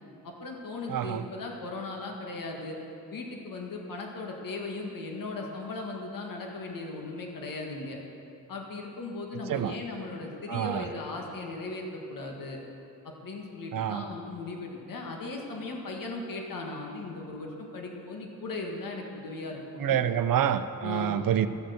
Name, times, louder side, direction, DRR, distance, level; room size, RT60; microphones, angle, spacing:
voice 1, 0.2-2.8 3.1-8.0 8.5-12.6 13.2-20.0 20.8-21.2, left 3 dB, 70° left, 1 dB, 1.8 m, -37 dB
voice 2, 0.9-1.2 9.5-9.8 10.5-10.9 13.7-14.0 19.8-21.5, right 10 dB, 70° right, 11 dB, 0.7 m, -27 dB
14.0 x 7.7 x 6.9 m, 2.7 s
cardioid pair, 95°, 35 cm